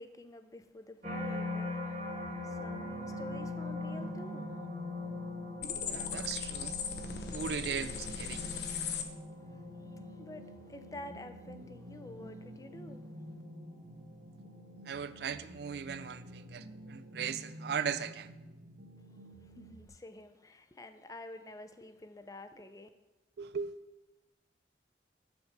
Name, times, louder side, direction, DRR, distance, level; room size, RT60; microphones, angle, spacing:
voice 1, 0.0-2.2 2.4-4.5 9.4-13.1 19.4-22.9, left 1 dB, 20° left, 0.4 m, -49 dB
sound 1, 1.0-16.2 16.7-17.2, left 2 dB, 40° right, 1.2 m, -43 dB
sound 2, 2.2-19.9, equal, 90° right, 0.8 m, -50 dB
sound 3, 5.6-9.0, left 7 dB, 65° left, 0.7 m, -38 dB
voice 2, 5.9-6.8 7.3-8.4 14.9-18.3 23.4-23.7, right 7 dB, 65° right, 0.4 m, -38 dB
7.1 x 4.5 x 6.6 m
head